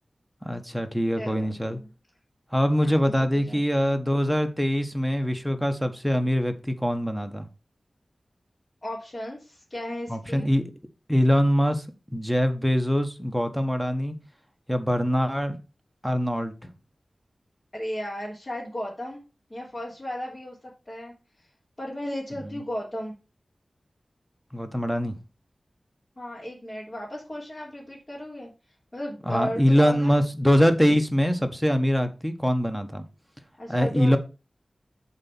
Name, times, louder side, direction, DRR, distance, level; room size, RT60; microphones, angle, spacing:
voice 1, 0.4-1.8 2.5-7.5 10.1-10.6 11.1-11.8 12.1-14.1 14.7-15.6 16.0-16.5 24.5-25.1 29.3-33.0 33.7-34.2, equal, ahead, 1.3 m, -23 dB
voice 2, 1.1-1.9 2.8-3.2 3.5-3.6 8.8-10.5 17.7-19.2 19.5-20.6 20.9-21.1 21.8-23.1 26.2-28.5 28.9-30.2 33.6-34.2, left 1 dB, 35° left, 3.1 m, -35 dB
7.5 x 4.2 x 6.1 m
wide cardioid pair, 50°, 0 cm